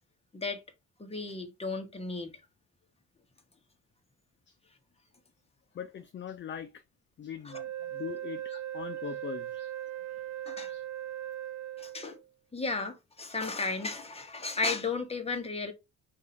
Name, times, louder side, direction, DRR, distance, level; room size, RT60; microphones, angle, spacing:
voice 1, 1.0-2.3 7.4-7.6 10.5-10.7 11.8-12.2 12.5-15.7, left 3 dB, 20° left, 1.2 m, -34 dB
voice 2, 5.7-6.8 7.2-9.7 10.7-10.8, left 8 dB, 40° left, 0.5 m, -41 dB
Wind instrument woodwind instrument, 7.5-12.3, right 12 dB, 70° right, 0.5 m, -39 dB
5.2 x 2.6 x 3.9 m
cardioid pair, 90°, 30 cm